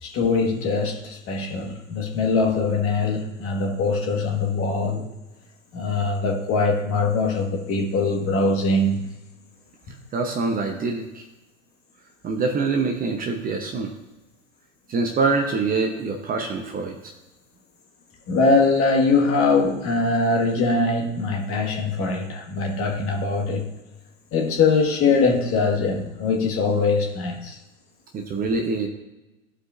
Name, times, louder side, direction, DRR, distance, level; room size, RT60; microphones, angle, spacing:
voice 1, 0.0-5.1 5.7-9.1 18.3-23.7 24.3-27.6, left 3 dB, 35° left, 2 dB, 1.5 m, -22 dB
voice 2, 10.1-11.2 12.2-13.9 14.9-17.0 28.1-28.9, right 4 dB, 20° right, 3 dB, 0.8 m, -25 dB
14.5 x 5.0 x 2.5 m, 1.0 s
hypercardioid pair, 105°, 41 cm